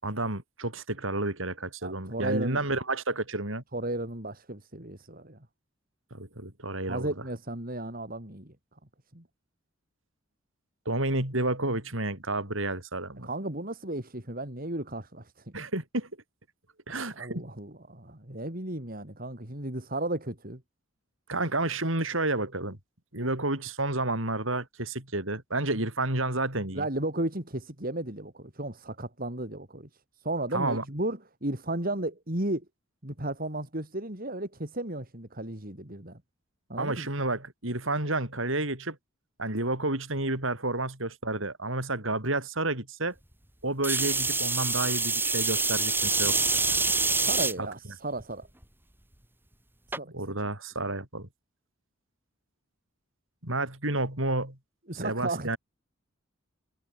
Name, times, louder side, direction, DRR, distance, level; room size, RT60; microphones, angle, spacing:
voice 1, 0.0-3.6 6.1-7.1 10.8-13.3 15.5-16.1 16.9-17.4 21.3-22.8 23.1-26.8 30.5-30.8 36.8-39.0 39.4-43.1 43.6-46.4 47.6-47.7 50.1-51.3 53.4-54.6 54.9-55.6, right 2 dB, 70° right, 6.3 m, -30 dB
voice 2, 1.8-2.6 3.7-5.5 6.9-8.5 9.1-9.2 13.2-15.3 15.6-15.7 16.9-20.6 26.7-29.9 30.2-32.6 33.0-36.2 36.7-37.1 47.2-48.5 49.9-50.1 54.9-55.6, right 1 dB, 45° right, 4.6 m, -34 dB
sound 1, 43.8-47.5 48.2-48.6 49.9-50.0, right 3 dB, 10° right, 4.9 m, -26 dB
head